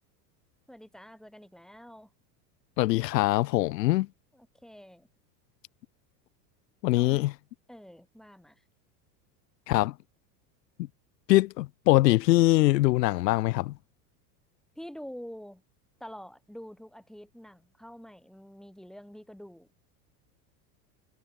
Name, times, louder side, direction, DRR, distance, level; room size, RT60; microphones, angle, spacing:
voice 1, 0.7-2.1 4.3-5.1 6.9-7.3 7.7-8.6 14.8-15.6 16.0-19.7, equal, ahead, 5.3 m, -46 dB
voice 2, 2.8-4.1 6.8-7.3 9.7-9.9 11.3-13.7, left 18 dB, 80° left, 1.1 m, -23 dB
supercardioid pair, 110°, 48 cm